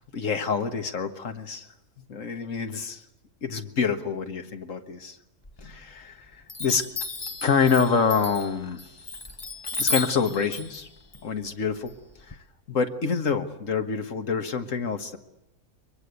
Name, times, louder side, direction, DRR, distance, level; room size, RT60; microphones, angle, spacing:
voice 1, 0.1-1.7 2.1-3.0 3.4-5.2 5.6-6.3 6.6-6.9 7.4-8.8 9.8-10.9 11.2-11.9 12.3-12.4 12.7-15.2, left 5 dB, 65° left, 7 dB, 1.9 m, -26 dB
Chime, 5.4-6.1 6.5-12.3, left 3 dB, 25° left, 0.7 m, -34 dB
23.0 x 22.0 x 8.3 m, 0.92 s
omnidirectional pair, 1.5 m